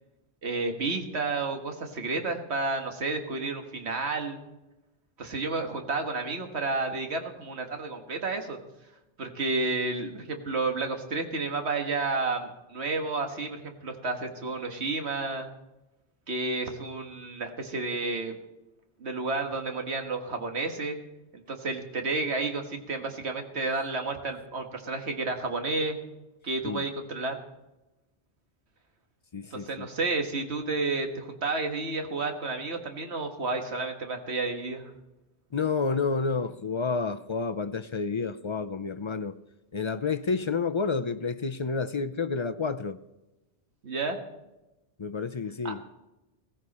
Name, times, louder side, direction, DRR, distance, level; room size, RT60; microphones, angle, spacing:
voice 1, 0.4-4.4 5.2-8.6 9.2-15.5 16.3-18.4 19.0-21.0 21.3-26.0 26.4-27.4 29.5-34.9 43.8-44.2 45.6-45.7, right 3 dB, 65° right, 1.9 m, -31 dB
voice 2, 29.3-29.9 35.5-39.4 39.7-43.0 45.0-45.8, left 4 dB, 45° left, 0.4 m, -30 dB
16.5 x 15.5 x 4.3 m
omnidirectional pair, 1.2 m